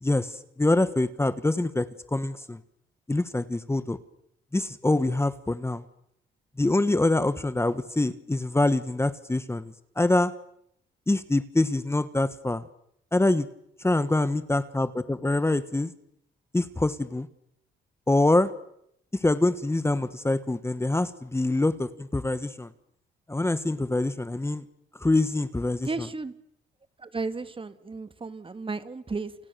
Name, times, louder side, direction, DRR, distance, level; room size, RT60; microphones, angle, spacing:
voice 1, 0.0-2.6 3.1-4.0 4.5-5.8 6.6-10.3 11.1-12.6 13.1-13.5 13.8-15.9 16.5-17.3 18.1-18.5 19.1-22.7 23.3-24.6 25.0-25.9, left 2 dB, 15° left, 13 dB, 1.5 m, -25 dB
voice 2, 25.8-26.3 27.0-29.3, right 3 dB, 25° right, 12 dB, 2.0 m, -34 dB
30.0 x 28.5 x 7.0 m, 0.76 s
cardioid pair, 90°, 20 cm